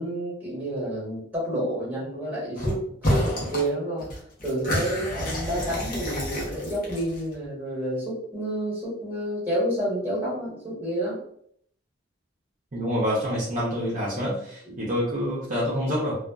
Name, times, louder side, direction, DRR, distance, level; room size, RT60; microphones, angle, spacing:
voice 1, 0.0-4.1 4.4-11.2 14.6-14.7, right 1 dB, 10° right, -8 dB, 1.3 m, -29 dB
sound 1, 2.6-2.8 3.0-3.7 4.0-7.3, equal, 45° left, 0.8 m, -28 dB
voice 2, 12.7-16.2, equal, 40° right, -7 dB, 0.6 m, -27 dB
2.4 x 2.3 x 2.2 m, 0.66 s
head